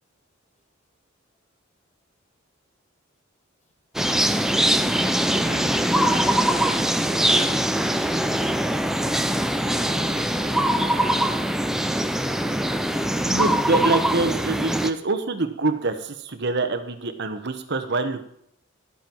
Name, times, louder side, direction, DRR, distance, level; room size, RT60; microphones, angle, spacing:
sound 1, 3.9-14.9, right 1 dB, ahead, 0.6 m, -22 dB
voice 1, 5.3-7.5 7.8-8.5, equal, 35° left, 5 dB, 1.6 m, -36 dB
Wind instrument woodwind instrument, 9.5-13.3, equal, 80° left, 4.9 m, -45 dB
voice 2, 13.1-18.2, right 3 dB, 55° right, 8 dB, 1.1 m, -25 dB
12.5 x 9.3 x 4.6 m, 0.71 s
head